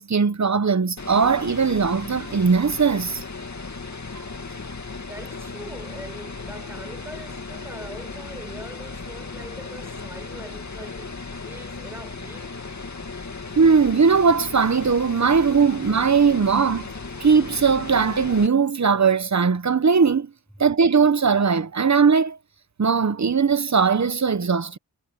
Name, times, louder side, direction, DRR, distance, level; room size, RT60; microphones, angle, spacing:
voice 1, 0.0-3.2 13.6-16.9 17.2-20.3 20.6-22.4 22.8-24.8, right 5 dB, 45° right, 1.0 m, -19 dB
sound 1, 1.0-18.5, left 4 dB, 45° left, 2.4 m, -36 dB
voice 2, 5.1-12.5, equal, 5° right, 7.7 m, -42 dB
wide cardioid pair, 75°, 38 cm